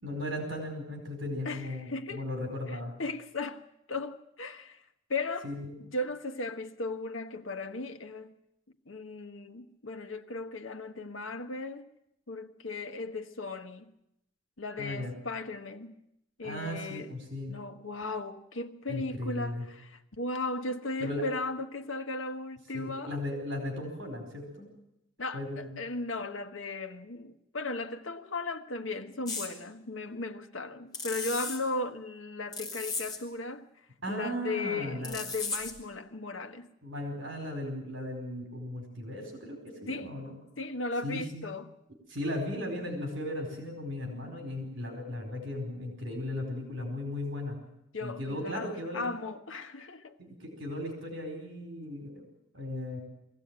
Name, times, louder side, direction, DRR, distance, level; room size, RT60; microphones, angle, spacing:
voice 1, 0.0-3.0 5.4-5.8 14.8-15.1 16.4-17.5 18.9-19.6 21.0-21.2 22.7-24.7 25.3-25.7 34.0-35.2 36.8-40.4 41.0-41.5 42.1-47.6 48.0-49.0 50.2-52.2 52.5-53.0, left 1 dB, 65° right, 4.7 m, -36 dB
voice 2, 1.4-2.2 3.0-3.6 3.9-4.8 5.1-5.5 5.8-8.3 8.9-11.9 12.3-13.9 14.6-16.0 16.4-17.1 17.5-23.2 25.2-33.7 34.1-36.7 39.9-40.1 40.6-41.7 47.9-50.2, left 2 dB, 75° left, 1.4 m, -36 dB
sound 1, 29.3-29.5 30.9-31.6 32.5-33.2 35.0-35.8, left 3 dB, 20° left, 3.5 m, -35 dB
22.5 x 15.5 x 8.9 m
head